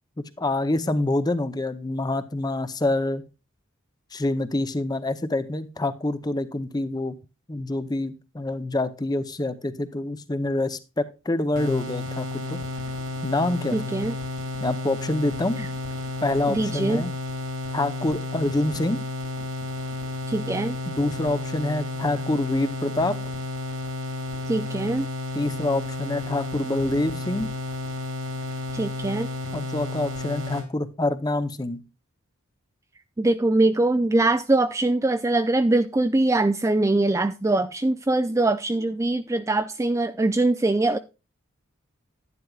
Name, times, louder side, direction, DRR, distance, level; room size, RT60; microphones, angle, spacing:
voice 1, 0.2-3.2 4.1-7.2 7.5-12.6 13.2-14.0 14.6-15.7 16.2-17.1 17.7-19.0 20.9-23.2 25.3-27.5 29.5-31.8, left 2 dB, 20° left, 0.7 m, -26 dB
sound 1, 11.6-30.7, left 2 dB, 80° right, 2.7 m, -32 dB
voice 2, 13.7-14.1 16.5-17.0 20.3-20.7 24.5-25.1 28.7-29.3 33.2-41.0, right 2 dB, 15° right, 0.3 m, -22 dB
11.0 x 10.5 x 2.3 m
head